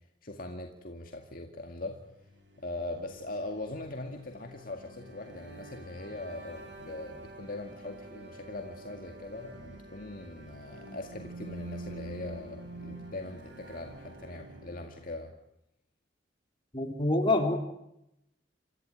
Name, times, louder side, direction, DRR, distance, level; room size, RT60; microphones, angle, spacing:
voice 1, 0.2-2.0 2.6-15.3, left 2 dB, 50° left, 3 dB, 2.1 m, -41 dB
sound 1, 2.0-15.0, right 2 dB, 70° right, 6.0 m, -47 dB
voice 2, 16.7-17.6, left 2 dB, 25° left, 3 dB, 3.7 m, -26 dB
28.0 x 14.5 x 9.0 m, 0.82 s
head